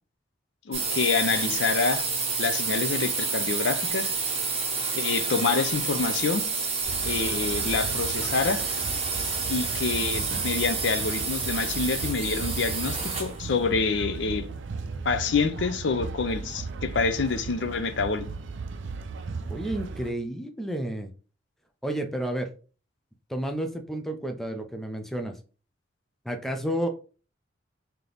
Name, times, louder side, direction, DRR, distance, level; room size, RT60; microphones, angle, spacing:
voice 1, 0.7-2.0 2.4-4.1 4.9-6.4 7.0-8.6 9.5-14.4 15.0-18.2, left 4 dB, 65° left, 0.5 m, -27 dB
sound 1, 0.7-13.4, right 4 dB, 30° right, 1.0 m, -29 dB
sound 2, 6.9-20.1, right 4 dB, 70° right, 0.4 m, -36 dB
voice 2, 19.5-21.1 21.8-22.5 23.3-25.3 26.2-26.9, right 1 dB, ahead, 0.5 m, -31 dB
3.4 x 2.9 x 3.9 m
head